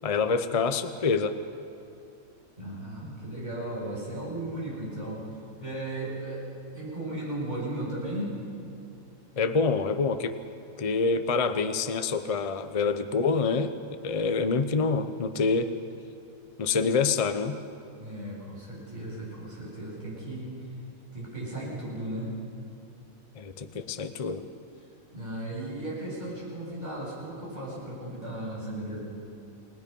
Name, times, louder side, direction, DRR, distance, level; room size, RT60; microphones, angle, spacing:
voice 1, 0.0-1.4 9.4-10.3 10.8-13.7 14.0-15.8 16.6-17.6 23.4-24.5, left 4 dB, 35° left, 10 dB, 0.7 m, -26 dB
voice 2, 2.6-5.3 5.6-8.4 18.0-20.5 21.1-22.4 25.1-29.0, right 1 dB, 30° right, -5 dB, 7.7 m, -36 dB
29.0 x 19.0 x 5.4 m, 2.6 s
omnidirectional pair, 1.4 m